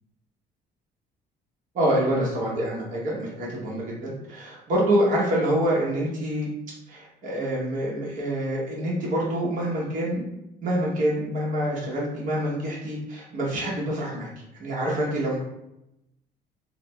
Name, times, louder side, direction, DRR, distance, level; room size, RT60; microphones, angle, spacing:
voice 1, 1.7-6.5 6.9-10.2 10.6-14.3 14.6-15.4, right 1 dB, 50° right, -5 dB, 1.1 m, -26 dB
4.8 x 2.1 x 2.3 m, 0.85 s
cardioid pair, 110°, 17 cm